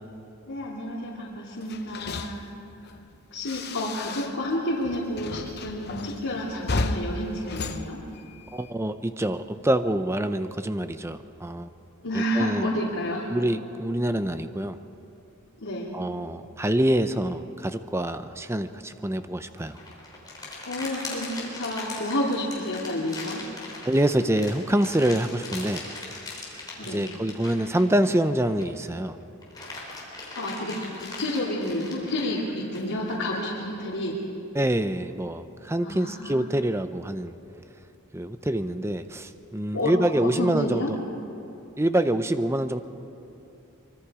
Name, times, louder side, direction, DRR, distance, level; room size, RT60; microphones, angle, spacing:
voice 1, 0.5-2.4 3.3-8.0 12.0-13.3 15.6-16.0 20.6-23.4 26.8-27.1 30.3-34.2 35.8-36.5 39.7-39.9 40.2-40.9, left 1 dB, 75° left, -7 dB, 2.9 m, -30 dB
sound 1, 1.6-4.6 4.8-8.7, left 2 dB, 45° left, 0.8 m, -34 dB
voice 2, 8.5-11.7 12.1-12.7 13.3-14.8 15.9-19.8 23.8-25.8 26.5-29.2 34.5-37.3 38.1-41.0 41.8-42.8, right 1 dB, 10° right, 10 dB, 0.6 m, -26 dB
sound 2, 19.6-28.8 29.2-33.4, left 3 dB, 20° left, 3.7 m, -40 dB
24.0 x 23.0 x 4.9 m, 2.8 s
head